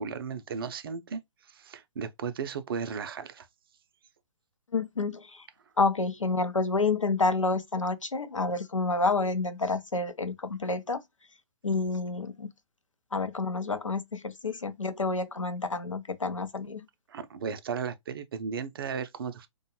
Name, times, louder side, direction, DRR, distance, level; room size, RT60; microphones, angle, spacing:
voice 1, 0.0-3.5 17.1-19.5, right 6 dB, 45° right, 0.4 m, -35 dB
voice 2, 4.7-5.5 5.8-11.0 11.6-12.5 13.1-16.9, left 3 dB, 90° left, 0.5 m, -29 dB
2.5 x 2.2 x 2.9 m
figure-of-eight pair, 130°, 16 cm